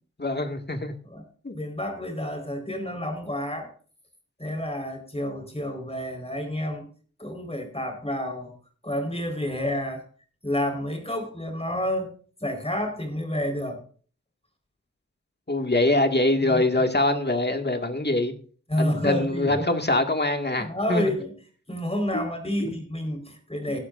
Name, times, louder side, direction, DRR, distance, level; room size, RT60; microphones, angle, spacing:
voice 1, 0.2-0.9 1.4-1.5 15.5-18.3 18.8-21.0 22.1-22.2 22.6-22.7 23.7-23.8, left 2 dB, 35° left, 5 dB, 2.0 m, -24 dB
voice 2, 1.5-3.7 4.4-6.8 7.2-8.5 8.8-10.1 10.4-12.1 12.4-13.8 16.4-16.6 18.7-19.5 20.5-21.3 21.7-23.8, left 1 dB, 20° left, 5 dB, 4.4 m, -29 dB
17.0 x 12.0 x 2.6 m, 0.42 s
wide cardioid pair, 55°, 29 cm